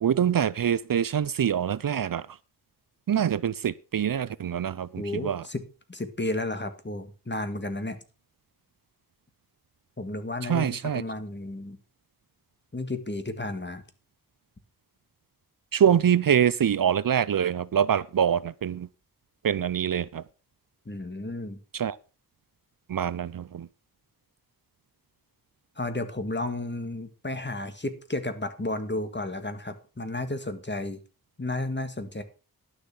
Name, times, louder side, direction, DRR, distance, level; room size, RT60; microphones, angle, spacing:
voice 1, 0.0-2.3 3.1-5.4 10.5-11.0 15.7-18.9 19.4-20.2 21.7-22.0 22.9-23.7, right 9 dB, 60° right, 0.5 m, -25 dB
voice 2, 5.0-8.0 10.0-11.8 12.7-13.8 20.9-21.6 25.8-31.0 31.4-32.2, left 2 dB, 30° left, 1.9 m, -33 dB
11.5 x 6.7 x 6.0 m
wide cardioid pair, 55°, 38 cm